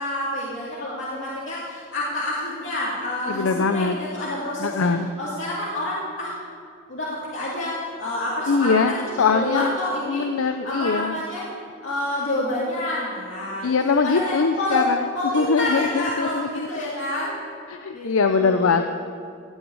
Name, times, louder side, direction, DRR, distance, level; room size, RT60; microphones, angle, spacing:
voice 1, 0.0-4.9 5.2-6.3 6.9-10.2 10.6-11.5 11.8-14.9 15.1-17.3 17.9-18.8, left 1 dB, 65° left, -7 dB, 2.4 m, -28 dB
voice 2, 3.3-4.0 4.6-5.2 8.5-9.7 10.1-11.2 13.6-15.1 15.3-16.7 17.7-18.8, left 4 dB, 85° left, 7 dB, 0.5 m, -22 dB
16.5 x 6.2 x 8.8 m, 2.4 s
head